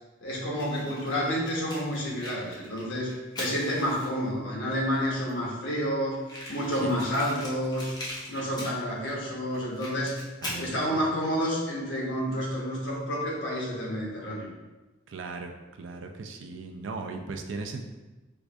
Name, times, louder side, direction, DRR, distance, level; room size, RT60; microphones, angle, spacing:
voice 1, 0.2-8.0 8.3-10.2 10.5-14.5, equal, 80° left, -4 dB, 1.0 m, -29 dB
Fire, 0.5-4.3 5.0-5.1 5.3-5.4 5.6-5.7 6.2-9.1 9.5-10.7, left 1 dB, 20° left, 0.7 m, -40 dB
voice 2, 10.4-11.0 15.1-17.8, right 3 dB, 75° right, 4 dB, 0.4 m, -38 dB
4.6 x 2.5 x 2.3 m, 1.1 s
head